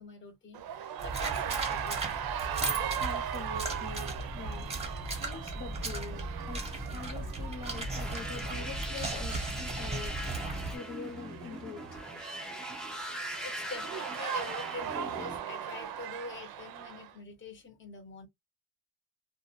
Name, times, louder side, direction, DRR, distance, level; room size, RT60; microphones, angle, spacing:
voice 1, 0.0-2.0 13.4-18.3, left 3 dB, 30° left, 0.8 m, -45 dB
sound 1, 0.5-17.1, right 9 dB, 65° right, 0.5 m, -39 dB
sound 2, 1.0-10.8, right 2 dB, 15° right, 0.8 m, -36 dB
voice 2, 3.0-4.8 5.1-10.2 10.7-12.0, left 5 dB, 50° left, 1.1 m, -45 dB
sound 3, 7.7-15.4, equal, ahead, 0.3 m, -41 dB
2.5 x 2.3 x 2.5 m
wide cardioid pair, 150°, 39 cm